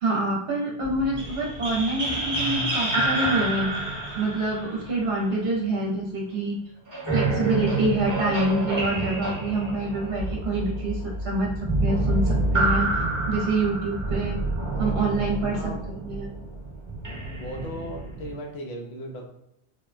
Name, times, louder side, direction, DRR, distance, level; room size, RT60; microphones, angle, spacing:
voice 1, 0.0-3.7 4.2-6.6 7.1-11.5 11.8-14.4 14.7-16.3, right 2 dB, 70° right, -2 dB, 0.9 m, -26 dB
sound 1, 0.8-5.9 6.9-18.4, right 2 dB, 20° right, 0.9 m, -28 dB
voice 2, 15.5-16.0 17.3-19.3, equal, 75° left, 0 dB, 0.9 m, -37 dB
3.5 x 2.1 x 2.4 m, 0.80 s
omnidirectional pair, 1.2 m